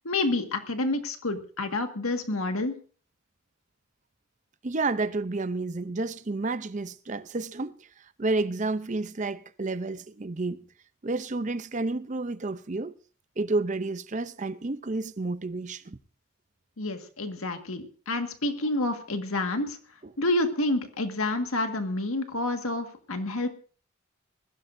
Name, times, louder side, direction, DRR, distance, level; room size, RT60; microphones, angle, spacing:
voice 1, 0.0-2.8 16.8-19.8 20.2-23.5, left 2 dB, 80° left, 1.8 m, -28 dB
voice 2, 4.6-7.7 8.2-10.7 11.0-13.0 13.4-16.0, right 3 dB, 35° right, 0.6 m, -30 dB
21.0 x 16.0 x 2.6 m
head